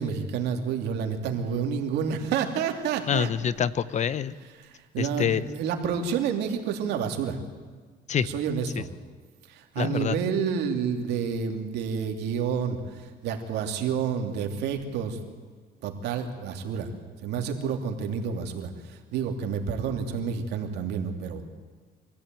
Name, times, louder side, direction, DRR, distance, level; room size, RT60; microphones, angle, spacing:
voice 1, 0.0-3.3 4.6-7.4 8.2-8.9 9.5-15.2 15.8-16.9 17.2-21.4, right 6 dB, 80° right, 4 dB, 2.8 m, -29 dB
voice 2, 3.1-4.4 5.0-5.4 8.1-8.3 9.8-10.2, left 8 dB, 45° left, 17 dB, 0.8 m, -26 dB
24.5 x 15.0 x 9.2 m, 1.5 s
cardioid pair, 110°, 17 cm